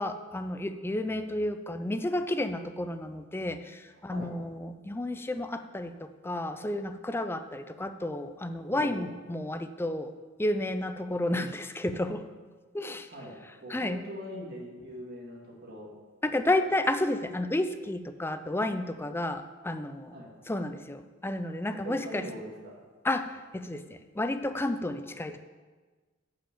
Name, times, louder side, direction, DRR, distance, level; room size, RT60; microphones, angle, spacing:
voice 1, 0.0-10.1 10.4-12.2 12.7-13.1 13.7-14.0 16.2-20.1 20.5-22.3 23.0-25.4, left 1 dB, 10° left, 9 dB, 0.4 m, -31 dB
voice 2, 8.7-9.1 13.1-15.9 20.1-20.3 21.7-22.8, equal, 50° right, -3 dB, 2.4 m, -42 dB
8.7 x 5.8 x 7.0 m, 1.4 s
head